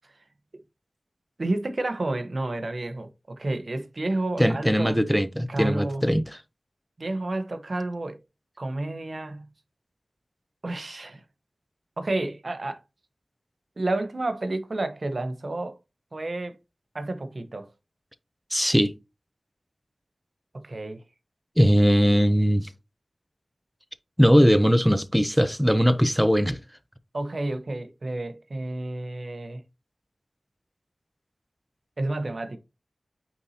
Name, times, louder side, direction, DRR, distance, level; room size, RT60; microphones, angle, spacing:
voice 1, 1.4-5.0 5.5-6.0 7.0-8.2 8.6-9.5 10.6-11.2 12.0-12.8 13.8-15.8 16.1-16.6 16.9-17.7 20.5-21.0 27.1-29.6 32.0-32.6, right 2 dB, 50° right, 0.9 m, -30 dB
voice 2, 4.4-6.2 18.5-18.9 21.6-22.7 24.2-26.6, equal, ahead, 0.6 m, -20 dB
8.6 x 4.1 x 2.8 m
wide cardioid pair, 80°, 0 cm